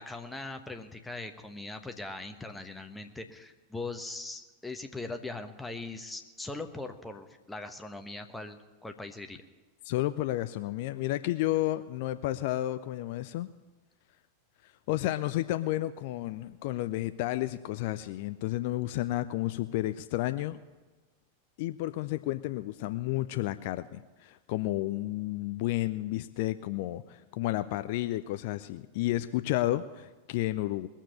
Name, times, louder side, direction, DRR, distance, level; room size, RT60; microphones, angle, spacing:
voice 1, 0.0-9.4, left 2 dB, 5° left, 6 dB, 1.1 m, -40 dB
voice 2, 9.8-13.5 14.9-20.6 21.6-30.9, left 16 dB, 50° left, 12 dB, 0.4 m, -31 dB
20.5 x 7.3 x 8.1 m, 1.3 s
figure-of-eight pair, 90°, 0 cm